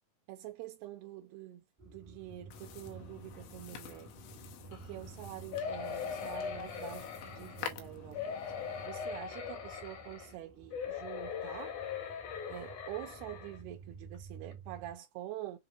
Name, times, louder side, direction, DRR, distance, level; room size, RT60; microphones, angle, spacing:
voice 1, 0.3-4.1 4.7-8.4 8.8-11.8 12.5-15.6, right 14 dB, 80° right, 2.3 m, -46 dB
sound 1, 1.8-15.0, right 4 dB, 50° right, 0.5 m, -53 dB
sound 2, 2.5-8.9, left 9 dB, 90° left, 3.4 m, -48 dB
sound 3, 5.5-7.7 8.1-10.3 10.7-13.6 14.1-14.2 14.5-14.6, left 7 dB, 65° left, 2.0 m, -40 dB
7.6 x 2.9 x 2.3 m
omnidirectional pair, 5.2 m